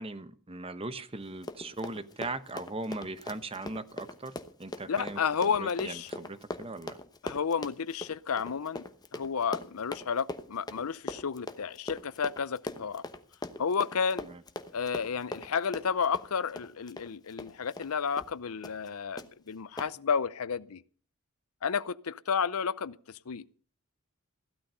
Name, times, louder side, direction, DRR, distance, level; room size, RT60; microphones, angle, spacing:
voice 1, 0.0-4.3 4.6-5.2 5.6-7.0 14.2-14.4, right 2 dB, 25° right, 0.9 m, -39 dB
Run, 1.3-17.9 18.2-18.3 18.6-18.9 19.2-19.3 19.8-19.9, left 2 dB, 20° left, 1.0 m, -41 dB
voice 2, 4.9-6.1 7.2-8.8 9.1-13.0 13.6-14.3 14.7-20.8 21.6-23.0 23.3-23.5, left 6 dB, 85° left, 0.6 m, -31 dB
16.0 x 12.5 x 5.5 m
head